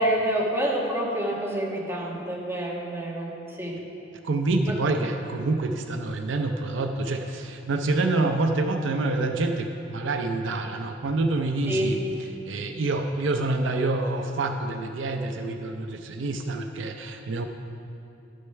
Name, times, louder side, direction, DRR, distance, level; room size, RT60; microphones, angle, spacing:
voice 1, 0.0-3.8 4.6-4.7 11.7-12.0, right 1 dB, 15° right, -4 dB, 1.6 m, -27 dB
voice 2, 4.2-12.0 12.5-17.5, right 2 dB, 75° right, 5 dB, 0.5 m, -27 dB
12.0 x 6.5 x 5.7 m, 2.9 s
head